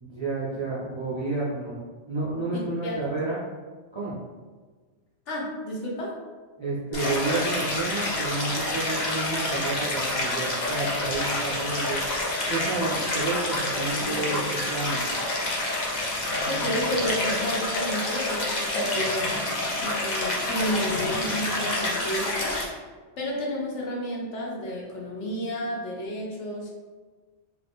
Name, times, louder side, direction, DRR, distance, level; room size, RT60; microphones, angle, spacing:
voice 1, 0.0-3.4 3.9-4.2 6.6-12.0 12.5-15.1, right 3 dB, 35° right, -8 dB, 0.4 m, -30 dB
voice 2, 2.5-3.0 5.3-6.2 16.5-19.3 19.8-22.9 23.2-26.7, equal, 65° left, -3 dB, 1.0 m, -31 dB
Stream, 6.9-22.6, left 2 dB, 50° left, 0.6 m, -28 dB
2.8 x 2.5 x 3.4 m, 1.4 s
omnidirectional pair, 1.3 m